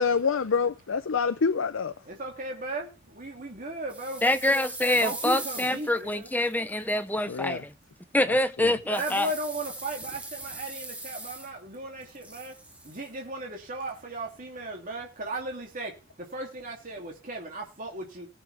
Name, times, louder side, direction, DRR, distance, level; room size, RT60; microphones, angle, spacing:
voice 1, 0.0-1.9 7.3-7.6 8.6-8.7, left 5 dB, 90° left, 0.6 m, -26 dB
voice 2, 2.0-4.2 4.9-6.3 8.8-12.5 12.8-15.9 16.2-18.3, right 2 dB, 45° right, 2.7 m, -36 dB
sound 1, 3.9-6.9 8.9-11.8 12.0-13.1, right 2 dB, 5° right, 1.6 m, -40 dB
voice 3, 4.2-7.7 8.1-9.3, left 1 dB, 10° left, 0.8 m, -25 dB
19.0 x 7.0 x 3.4 m
head